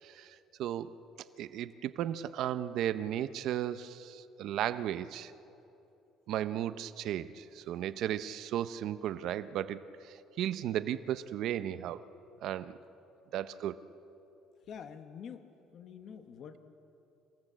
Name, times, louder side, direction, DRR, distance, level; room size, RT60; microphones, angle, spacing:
voice 1, 0.0-0.9 1.4-5.3 6.3-12.0 12.4-12.8 13.3-13.8, right 11 dB, 55° right, 13 dB, 0.6 m, -35 dB
voice 2, 14.7-16.6, left 7 dB, 40° left, 8 dB, 1.1 m, -47 dB
29.5 x 17.0 x 7.5 m, 2.9 s
cardioid pair, 175°, 0 cm